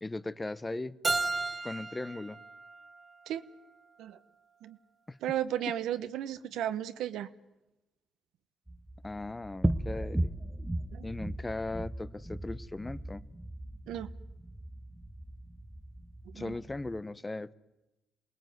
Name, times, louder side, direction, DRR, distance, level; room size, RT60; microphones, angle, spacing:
voice 1, 0.0-1.0 1.6-2.4 5.1-5.2 9.0-10.3 11.0-13.2 16.3-17.5, left 2 dB, 15° left, 0.9 m, -38 dB
Keyboard (musical), 1.0-3.9, right 3 dB, 30° right, 2.3 m, -35 dB
voice 2, 5.2-7.3 10.9-11.1 13.9-14.1 16.3-16.5, right 11 dB, 85° right, 1.2 m, -34 dB
sound 1, 8.7-17.0, right 1 dB, 10° right, 1.0 m, -37 dB
27.5 x 20.0 x 9.4 m
cardioid pair, 90°, 0 cm